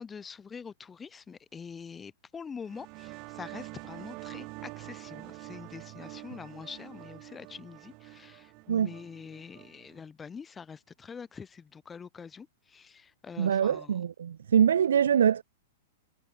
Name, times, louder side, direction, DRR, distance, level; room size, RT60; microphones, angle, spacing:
voice 1, 0.0-14.0, left 6 dB, 15° left, 1.4 m, -45 dB
sound 1, 2.6-10.0, right 28 dB, 40° right, 2.9 m, -46 dB
voice 2, 13.4-15.4, right 8 dB, 65° right, 1.0 m, -24 dB
figure-of-eight pair, 100°, 0 cm